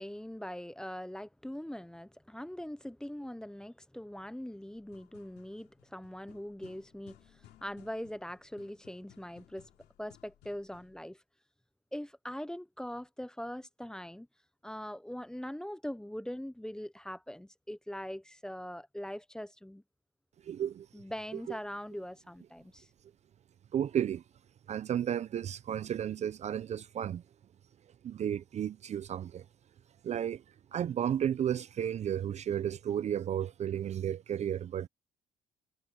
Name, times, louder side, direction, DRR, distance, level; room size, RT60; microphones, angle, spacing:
voice 1, 0.0-9.7 10.0-11.2 11.9-14.3 14.6-19.8 20.9-22.9, equal, 5° left, 0.7 m, -42 dB
sound 1, 4.8-11.0, left 14 dB, 75° left, 3.1 m, -61 dB
voice 2, 20.4-20.9 21.5-21.6 23.7-24.2 24.7-27.2 28.0-29.4 30.0-30.4 30.7-34.9, right 9 dB, 40° right, 0.5 m, -33 dB
cardioid pair, 110°, 17 cm